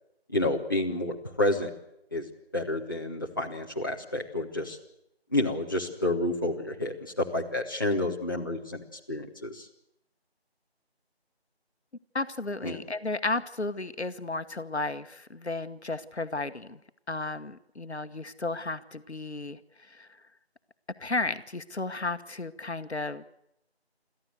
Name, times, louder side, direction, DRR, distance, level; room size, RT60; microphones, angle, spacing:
voice 1, 0.3-1.7 2.1-2.3 2.5-4.8 5.3-8.8 9.1-9.7 12.6-12.8, left 1 dB, 20° left, -2 dB, 1.5 m, -29 dB
voice 2, 12.1-16.8 17.1-19.6 19.9-20.1 21.0-23.2, left 2 dB, 80° left, 10 dB, 1.3 m, -33 dB
27.5 x 14.0 x 8.1 m, 0.81 s
figure-of-eight pair, 170°, 33 cm